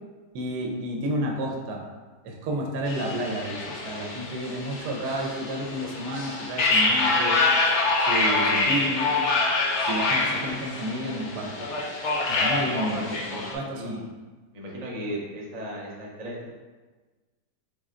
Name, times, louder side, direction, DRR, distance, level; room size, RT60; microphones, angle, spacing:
voice 1, 0.3-1.8 2.2-7.4 8.1-9.1 9.9-11.7 12.3-13.0 13.5-14.0, right 1 dB, 70° right, 0 dB, 1.2 m, -31 dB
sound 1, 2.9-13.5, left 3 dB, 55° left, 0.8 m, -26 dB
voice 2, 12.5-14.0 14.5-16.5, equal, 40° right, -3 dB, 0.5 m, -36 dB
3.9 x 3.2 x 3.6 m, 1.3 s
omnidirectional pair, 1.9 m